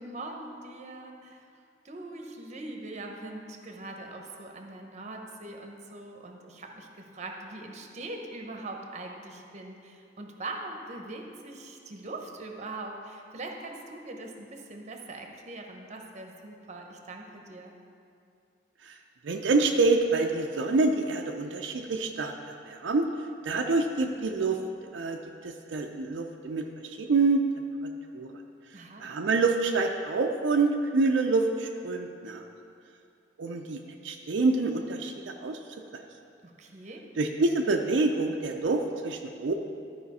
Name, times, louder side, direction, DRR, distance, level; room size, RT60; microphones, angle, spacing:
voice 1, 0.0-1.5 1.8-17.7 28.7-29.1 36.4-37.1, right 2 dB, 40° right, 2 dB, 0.8 m, -42 dB
voice 2, 19.2-23.0 23.4-24.6 24.9-25.2 25.4-27.4 28.1-28.3 29.0-32.4 33.4-35.6 35.9-36.0 37.2-39.5, right 3 dB, 80° right, 3 dB, 0.5 m, -27 dB
13.0 x 5.0 x 4.1 m, 2.5 s
head